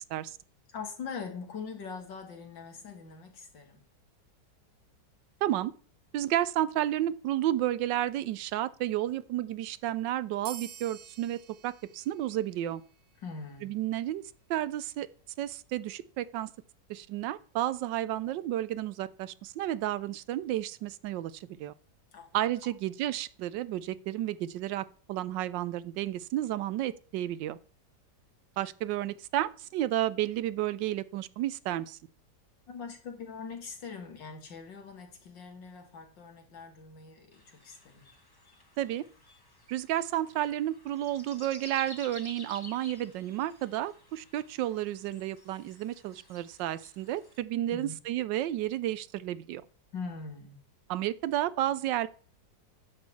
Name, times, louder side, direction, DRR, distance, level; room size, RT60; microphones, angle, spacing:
voice 1, 0.7-3.8 13.2-13.7 22.1-22.3 22.6-22.7 32.7-38.1 47.7-48.0 49.9-50.6, left 5 dB, 80° left, 2.6 m, -42 dB
voice 2, 5.4-5.7 6.1-12.8 13.6-14.2 14.5-15.1 15.4-16.5 16.9-21.7 22.3-27.6 28.6-32.0 38.8-39.0 39.7-49.6 50.9-52.1, right 13 dB, 80° right, 1.3 m, -32 dB
sound 1, 10.4-13.5, right 8 dB, 60° right, 1.2 m, -49 dB
sound 2, 37.3-47.4, left 2 dB, 15° left, 0.9 m, -53 dB
10.0 x 3.9 x 7.3 m
omnidirectional pair, 1.9 m